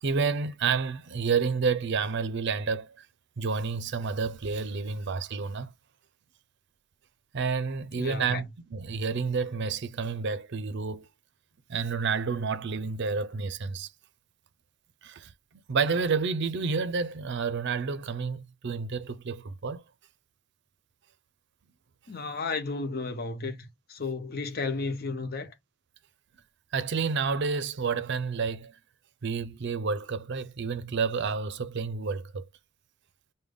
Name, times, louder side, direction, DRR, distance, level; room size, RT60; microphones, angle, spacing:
voice 1, 0.0-3.1 3.4-5.7 7.3-11.1 11.7-13.9 15.0-15.3 15.7-19.8 26.7-28.7 29.2-32.5, right 5 dB, 55° right, 0.5 m, -30 dB
voice 2, 8.0-8.4 22.1-25.5, left 3 dB, 50° left, 0.7 m, -33 dB
5.1 x 2.2 x 3.5 m
head